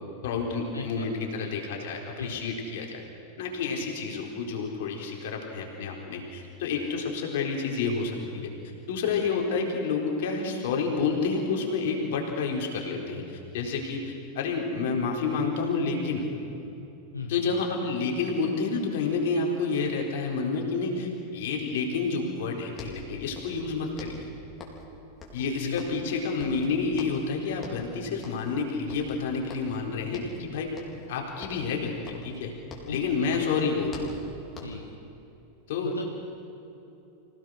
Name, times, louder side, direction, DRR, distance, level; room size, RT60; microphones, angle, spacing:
voice 1, 0.2-3.0 3.4-8.5 8.9-16.3 17.3-24.2 25.3-30.7 31.1-32.5 32.9-34.2 35.7-35.9, left 4 dB, 60° left, 0 dB, 4.1 m, -29 dB
voice 2, 0.7-1.6 2.2-2.8 3.8-3.9 17.1-17.5 25.6-25.9 32.8-33.4 34.6-34.9 35.8-36.1, left 4 dB, 90° left, 2 dB, 1.2 m, -38 dB
sound 1, 22.4-22.5 22.7-23.7 24.0-24.9 25.2-26.1 26.4-27.3 27.6-27.9 28.2-28.6 28.9-29.8 30.1-30.4 30.8-31.1 31.4-33.0 33.3-34.9, left 3 dB, 25° left, 4.1 m, -45 dB
25.5 x 17.0 x 6.4 m, 2.9 s
figure-of-eight pair, 90°, 0 cm